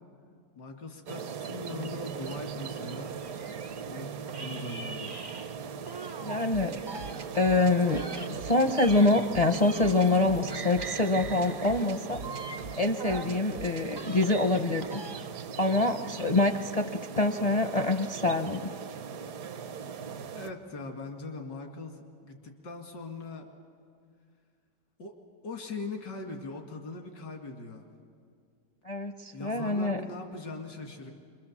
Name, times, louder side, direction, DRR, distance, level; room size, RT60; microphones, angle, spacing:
voice 1, 0.6-3.2 3.8-4.1 4.4-5.2 20.3-23.5 25.0-25.1 25.4-27.8 29.3-31.1, left 3 dB, 90° left, 3 dB, 2.6 m, -40 dB
sound 1, 1.1-20.5, right 6 dB, 60° right, 1.2 m, -40 dB
sound 2, 1.8-3.9 4.3-6.5 6.8-10.2 10.5-13.4 13.8-15.5, right 3 dB, 35° right, 0.4 m, -43 dB
voice 2, 6.2-6.8 7.3-12.2 12.8-15.0 15.6-18.7 28.8-30.0, left 2 dB, 40° left, 4 dB, 0.5 m, -25 dB
sound 3, 6.5-13.8, right 4 dB, 80° right, 1.9 m, -43 dB
26.0 x 22.5 x 7.2 m, 2.1 s
omnidirectional pair, 1.8 m